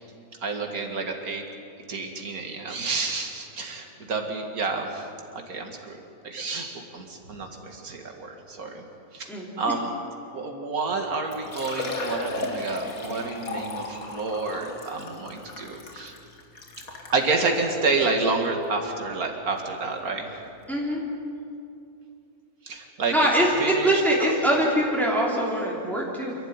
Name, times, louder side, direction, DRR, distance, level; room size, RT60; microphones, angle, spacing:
voice 1, 0.4-1.4 1.9-5.1 5.3-6.0 6.2-8.8 9.1-9.9 10.3-16.1 17.1-20.3 22.6-23.3 23.6-24.3, right 3 dB, 75° right, 2 dB, 2.6 m, -29 dB
Liquid, 10.9-11.0 11.3-17.2 17.9-18.0 18.4-18.5 20.2-20.3 20.4-20.5, left 2 dB, 70° left, 2.5 m, -35 dB
voice 2, 20.7-21.0 23.1-26.4, right 1 dB, ahead, -4 dB, 3.6 m, -23 dB
27.5 x 12.0 x 9.8 m, 2.6 s
omnidirectional pair, 1.6 m